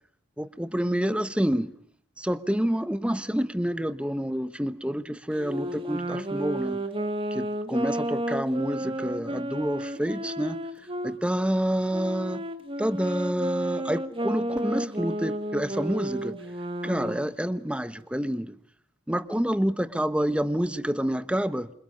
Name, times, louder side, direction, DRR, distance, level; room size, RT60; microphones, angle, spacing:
voice 1, 0.4-1.7 2.2-6.8 7.3-10.7 11.0-12.4 12.8-16.4 16.8-18.5 19.1-21.7, equal, 5° right, 1.1 m, -28 dB
Wind instrument woodwind instrument, 5.3-11.2 11.9-17.3, right 1 dB, 30° right, 1.8 m, -32 dB
29.0 x 26.5 x 5.3 m
head